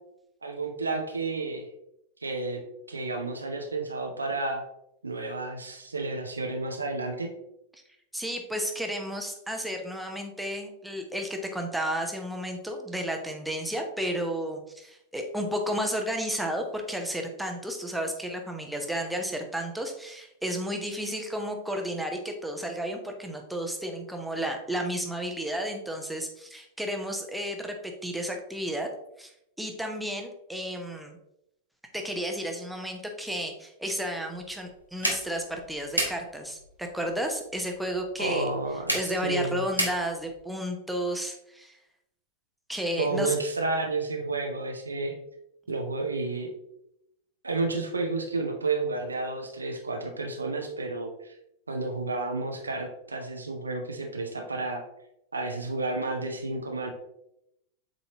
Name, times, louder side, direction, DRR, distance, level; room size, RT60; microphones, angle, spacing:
voice 1, 0.4-1.6 2.2-2.6 2.9-4.6 5.0-7.3 38.2-39.6 43.0-45.2 45.7-46.5 47.4-51.3 51.7-54.8 55.3-56.9, right 3 dB, 80° right, 3 dB, 0.8 m, -31 dB
voice 2, 8.1-28.9 29.2-29.3 29.6-31.2 31.9-38.5 38.9-41.8 42.7-43.4, equal, ahead, 3 dB, 1.0 m, -32 dB
sound 1, 34.3-40.4, equal, 90° left, 1.2 m, -34 dB
7.7 x 4.2 x 2.9 m, 0.80 s
figure-of-eight pair, 90°, 0 cm